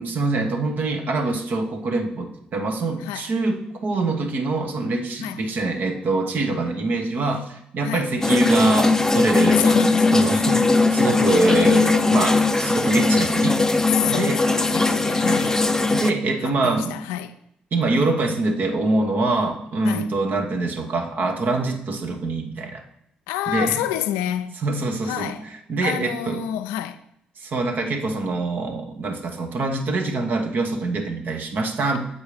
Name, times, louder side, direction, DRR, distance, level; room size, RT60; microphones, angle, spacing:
voice 1, 0.0-9.7 10.1-10.6 10.9-13.6 14.1-14.4 15.9-17.0 17.7-22.8 23.5-23.8 24.6-25.3 25.7-26.4 27.4-32.0, right 2 dB, 60° right, 1.3 m, -24 dB
sound 1, 8.2-16.1, left 3 dB, 15° left, 0.6 m, -19 dB
voice 2, 9.5-10.6 13.9-15.6 16.4-17.4 19.8-20.1 23.3-24.6 25.0-25.5 25.8-27.0, left 12 dB, 90° left, 0.4 m, -28 dB
7.0 x 4.7 x 5.0 m
supercardioid pair, 55°, 3 cm